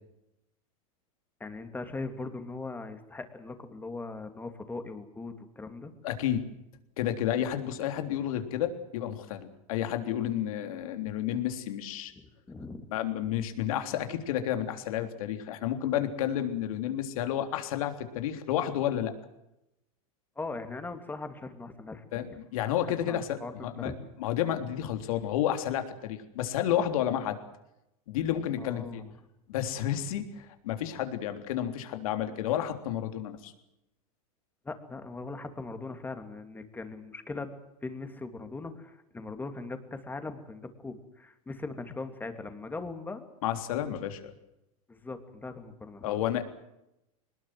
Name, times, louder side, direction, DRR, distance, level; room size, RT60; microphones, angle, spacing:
voice 1, 1.4-5.9 12.2-12.9 20.4-22.4 23.0-23.9 28.6-29.1 34.6-37.5 37.8-43.2 44.9-46.2, left 3 dB, 10° left, 8 dB, 2.8 m, -40 dB
voice 2, 6.0-6.4 7.0-12.1 12.9-19.1 22.1-23.9 24.2-27.4 28.1-29.0 29.5-33.5 43.4-44.3 46.0-46.4, left 11 dB, 70° left, 7 dB, 3.6 m, -31 dB
22.5 x 20.0 x 7.8 m, 0.88 s
supercardioid pair, 130°, 18 cm